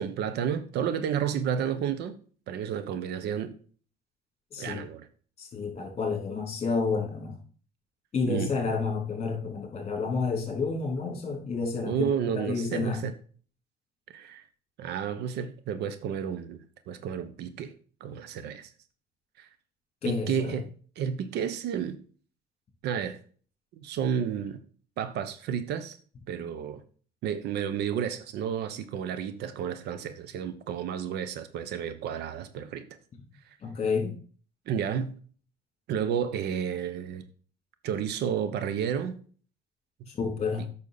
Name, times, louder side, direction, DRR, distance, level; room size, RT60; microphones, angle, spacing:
voice 1, 0.0-2.1 2.5-3.6 4.6-5.1 8.3-8.5 11.8-13.1 14.1-14.4 14.8-17.7 18.0-18.7 19.4-19.5 20.0-20.7 21.0-22.0 22.8-23.2 23.8-24.6 25.0-26.0 26.3-26.8 27.2-32.9 34.7-35.1 35.9-37.2 37.8-39.2, right 8 dB, 80° right, 1.0 m, -31 dB
voice 2, 4.5-4.9 5.4-7.4 8.1-13.0 20.0-20.6 33.6-34.1 40.1-40.7, left 4 dB, 40° left, 3.4 m, -30 dB
8.8 x 6.2 x 4.1 m
cardioid pair, 110°, 17 cm